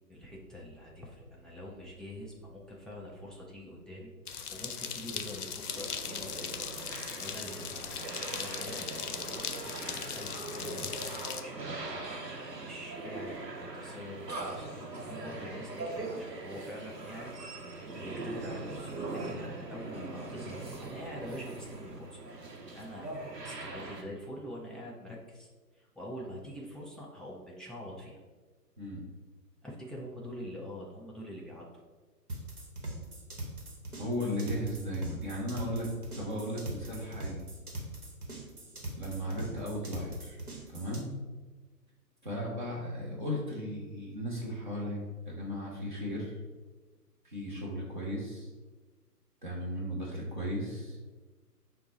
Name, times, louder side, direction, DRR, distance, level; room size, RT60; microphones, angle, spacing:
voice 1, 0.1-9.4 9.9-10.9 11.3-12.1 12.5-13.3 13.6-17.3 17.8-22.2 22.7-23.1 23.4-25.5 25.7-28.2 29.6-31.7, equal, ahead, -4 dB, 0.3 m, -45 dB
sound 1, 4.3-11.4, left 7 dB, 65° left, 0.5 m, -39 dB
sound 2, 5.7-24.0, right 2 dB, 80° right, 0.9 m, -41 dB
sound 3, 32.3-41.0, right 1 dB, 65° right, 1.2 m, -41 dB
voice 2, 34.0-35.9 36.2-37.4 39.0-40.4 40.7-41.1 42.2-46.4 47.2-48.5 49.4-51.0, equal, 30° right, -4 dB, 0.7 m, -36 dB
5.6 x 2.2 x 3.8 m, 1.3 s
figure-of-eight pair, 140°, 48 cm